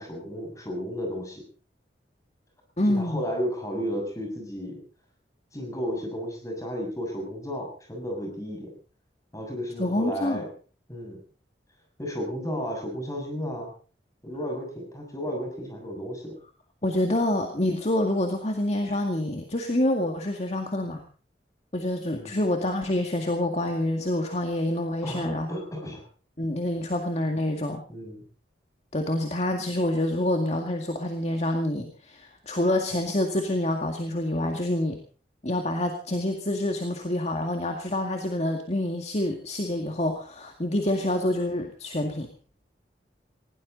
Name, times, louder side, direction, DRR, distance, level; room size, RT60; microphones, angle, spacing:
voice 1, 0.0-1.4 3.0-4.8 5.5-8.7 9.3-10.5 10.9-11.2 12.0-13.7 14.2-16.3 22.1-22.3 25.0-26.0 26.8-26.9 27.9-28.2, equal, 20° left, 2 dB, 6.9 m, -33 dB
voice 2, 2.8-3.2 9.8-10.4 16.8-21.0 21.7-25.5 26.4-27.8 28.9-35.0 35.4-42.3, left 1 dB, 40° left, 4 dB, 2.1 m, -27 dB
20.0 x 18.0 x 4.0 m, 0.39 s
head